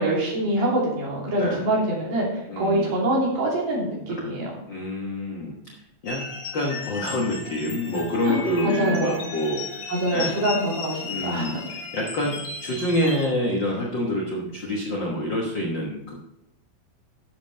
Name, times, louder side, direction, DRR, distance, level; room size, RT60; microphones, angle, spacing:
voice 1, 0.0-4.6 8.3-9.2 9.9-11.6, right 1 dB, 60° right, -4 dB, 4.4 m, -25 dB
voice 2, 1.4-1.7 2.5-2.9 4.7-6.3 6.5-10.3 11.0-16.2, left 1 dB, 85° left, -1 dB, 1.0 m, -27 dB
sound 1, 6.1-13.3, left 4 dB, 55° left, 1.6 m, -35 dB
11.0 x 7.4 x 4.2 m, 0.86 s
omnidirectional pair, 4.2 m